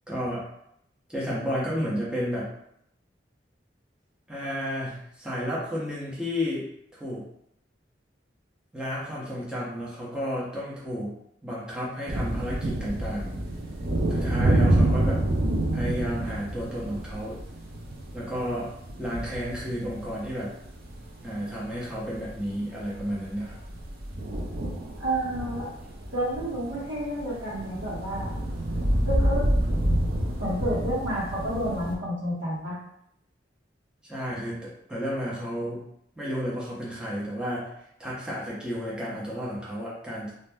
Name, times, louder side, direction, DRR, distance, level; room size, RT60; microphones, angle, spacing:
voice 1, 0.1-0.4 1.1-2.5 4.3-7.2 8.7-11.1 11.4-13.4 14.1-15.2 15.7-17.4 18.1-18.7 19.0-20.5 21.2-23.5 34.0-35.8 36.2-37.7 38.0-40.3, equal, 5° right, -7 dB, 0.7 m, -32 dB
sound 1, 12.1-31.9, right 1 dB, 55° right, 0.5 m, -28 dB
voice 2, 25.0-25.7 26.1-28.3 29.1-29.5 30.4-32.8, right 1 dB, 80° right, -7 dB, 1.2 m, -30 dB
2.6 x 2.1 x 3.3 m, 0.75 s
head